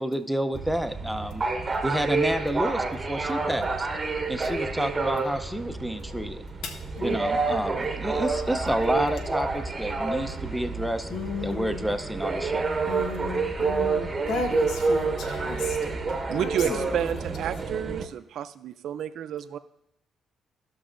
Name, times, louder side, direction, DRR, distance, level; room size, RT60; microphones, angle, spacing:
voice 1, 0.0-1.4 1.8-3.9 4.3-6.4 7.0-11.1 11.4-12.7 16.6-16.7, equal, ahead, 8 dB, 0.6 m, -29 dB
sound 1, 0.5-18.1, right 4 dB, 25° right, 0.9 m, -29 dB
voice 2, 6.6-7.2 11.1-11.9 12.9-16.0 16.4-16.9, left 3 dB, 80° left, 5 dB, 1.1 m, -34 dB
voice 3, 16.3-19.6, right 9 dB, 70° right, 12 dB, 0.4 m, -30 dB
14.5 x 6.1 x 2.5 m, 0.81 s
cardioid pair, 90°, 0 cm